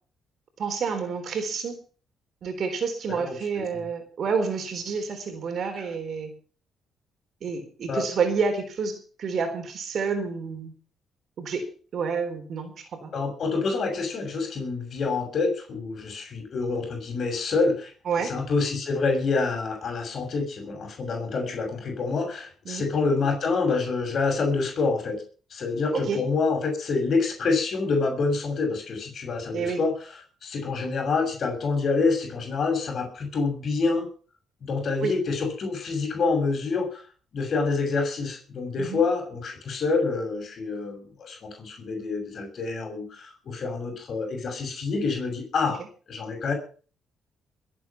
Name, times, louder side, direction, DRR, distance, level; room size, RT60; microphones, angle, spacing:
voice 1, 0.6-1.8 2.4-6.3 7.4-10.7 11.4-13.1 18.1-18.3 22.7-22.9 25.9-26.2 29.5-29.8 35.0-35.1 38.8-39.0, right 5 dB, 60° right, 8 dB, 3.9 m, -29 dB
voice 2, 13.1-17.9 18.2-25.2 25.5-29.9 30.4-34.1 34.6-37.0 37.3-45.8 46.1-46.5, left 4 dB, 55° left, 4 dB, 6.5 m, -27 dB
22.0 x 8.6 x 5.8 m, 0.40 s
cardioid pair, 90°, 0 cm